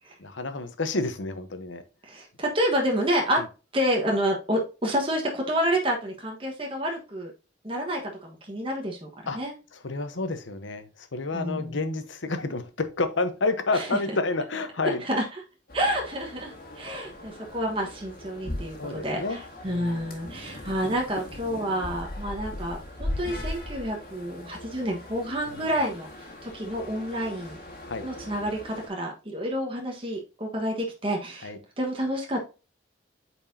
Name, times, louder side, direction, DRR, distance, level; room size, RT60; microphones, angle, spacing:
voice 1, 0.2-1.8 3.4-3.5 9.3-9.4 9.7-15.0 18.8-19.4 19.6-20.6 25.5-25.7 27.8-28.1 31.4-31.6, left 3 dB, 80° left, 9 dB, 0.9 m, -30 dB
voice 2, 2.0-3.4 3.7-7.3 7.6-9.1 9.3-9.5 11.3-11.8 13.7-13.9 14.8-15.2 15.7-27.6 28.0-32.4, equal, 30° right, 0 dB, 1.3 m, -29 dB
sound 1, 15.7-28.9, left 1 dB, 50° left, 1.9 m, -39 dB
8.8 x 4.5 x 2.7 m, 0.31 s
head